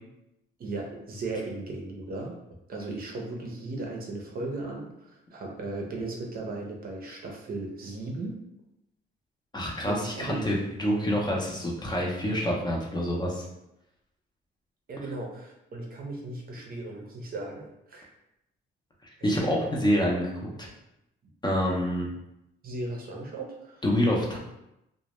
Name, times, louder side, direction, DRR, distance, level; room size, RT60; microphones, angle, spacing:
voice 1, 0.6-2.4 2.7-8.4 9.9-10.4 14.9-18.1 19.2-19.7 22.6-23.8, right 2 dB, 50° right, 0 dB, 0.6 m, -36 dB
voice 2, 9.5-13.5 19.2-20.7 21.4-22.1 23.8-24.4, equal, 20° left, -2 dB, 0.5 m, -27 dB
2.1 x 2.0 x 2.9 m, 0.86 s
cardioid pair, 90°, 20 cm